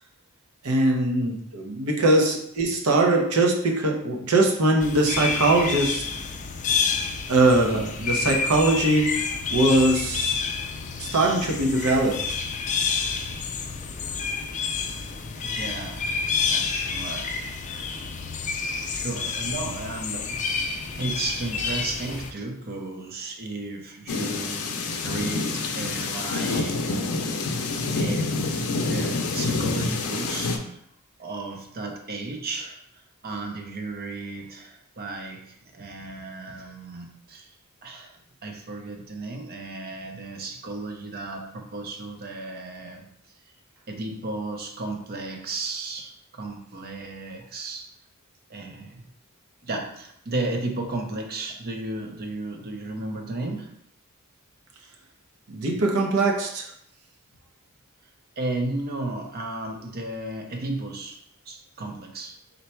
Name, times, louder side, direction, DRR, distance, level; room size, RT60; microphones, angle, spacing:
voice 1, 0.6-6.0 7.3-9.2 9.5-10.4 11.0-12.2 55.5-56.7, right 2 dB, 85° right, 1 dB, 0.7 m, -21 dB
sound 1, 4.8-22.3, left 5 dB, 35° left, 0.3 m, -29 dB
voice 2, 15.4-16.1 16.4-17.9 18.6-20.4 21.0-27.0 27.9-30.8 31.2-37.6 37.8-38.1 38.4-43.1 43.9-47.9 48.5-49.1 49.6-53.7 58.4-61.2 61.5-62.4, right 2 dB, 45° right, 3 dB, 0.6 m, -34 dB
sound 2, 24.1-30.6, left 3 dB, 90° left, 0.5 m, -27 dB
4.0 x 2.2 x 4.3 m, 0.70 s
head